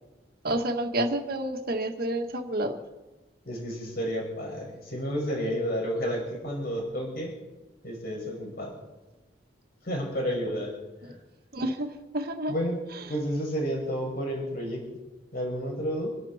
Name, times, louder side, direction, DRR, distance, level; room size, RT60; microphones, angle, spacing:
voice 1, 0.4-2.8 11.5-12.5, right 1 dB, 55° right, 5 dB, 1.8 m, -29 dB
voice 2, 3.4-7.3 7.8-8.8 9.8-10.7 11.0-11.1 12.5-12.8 13.1-14.9 15.3-16.1, equal, 55° left, -1 dB, 6.0 m, -31 dB
27.5 x 11.5 x 4.4 m, 1.1 s
head